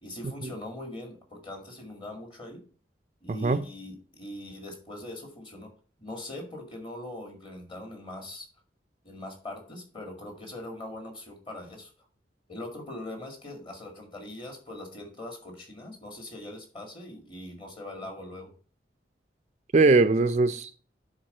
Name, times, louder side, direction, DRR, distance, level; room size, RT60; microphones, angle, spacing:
voice 1, 0.0-2.6 3.2-5.7 6.0-8.5 9.0-11.9 12.5-18.5, left 1 dB, 30° left, 2.1 m, -41 dB
voice 2, 3.3-3.6 19.7-20.7, right 3 dB, 40° right, 0.4 m, -21 dB
9.5 x 3.9 x 5.4 m
head